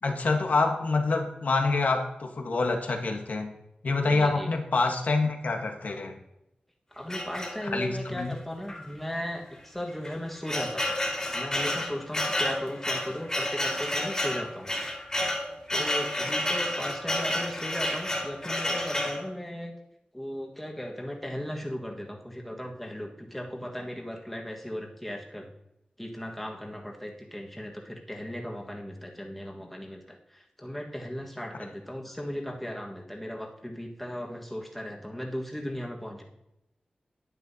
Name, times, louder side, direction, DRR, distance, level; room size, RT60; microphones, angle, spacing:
voice 1, 0.0-3.5 3.8-6.2 7.6-8.3, left 3 dB, 70° left, 4 dB, 1.3 m, -26 dB
voice 2, 4.0-4.5 6.9-10.9 11.3-14.7 15.7-19.7 20.1-25.5 26.0-36.2, equal, 5° left, 0 dB, 1.5 m, -37 dB
sound 1, 7.1-8.0 8.7-8.8 9.1-9.2 9.9-19.2, left 1 dB, 25° left, 2.4 m, -30 dB
10.0 x 9.8 x 2.8 m, 0.86 s
wide cardioid pair, 105°, 3 cm